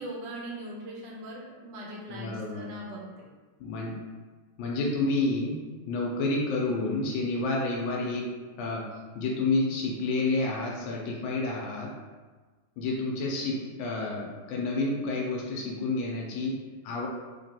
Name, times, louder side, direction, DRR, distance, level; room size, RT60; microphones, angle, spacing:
voice 1, 0.0-3.3, right 1 dB, 75° right, -3 dB, 1.4 m, -40 dB
voice 2, 2.1-2.6 3.6-4.0 4.6-8.3 8.6-8.9 9.1-11.9 12.8-17.1, left 2 dB, 85° left, -2 dB, 1.4 m, -29 dB
3.6 x 3.0 x 2.8 m, 1.3 s
omnidirectional pair, 2.1 m